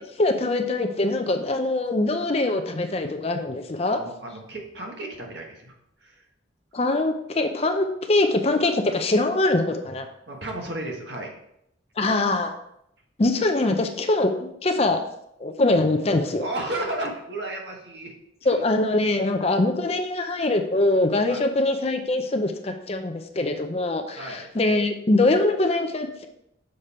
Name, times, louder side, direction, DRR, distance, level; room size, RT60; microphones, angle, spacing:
voice 1, 0.2-4.0 6.7-10.1 12.0-12.5 13.2-15.0 15.4-16.4 18.5-26.3, left 2 dB, 30° left, 6 dB, 0.5 m, -23 dB
voice 2, 3.9-5.7 6.0-6.2 10.3-11.3 16.4-18.1 18.4-18.5 21.3-21.4 24.2-24.5, right 1 dB, 60° right, 1 dB, 1.4 m, -33 dB
6.6 x 5.1 x 4.3 m, 0.77 s
head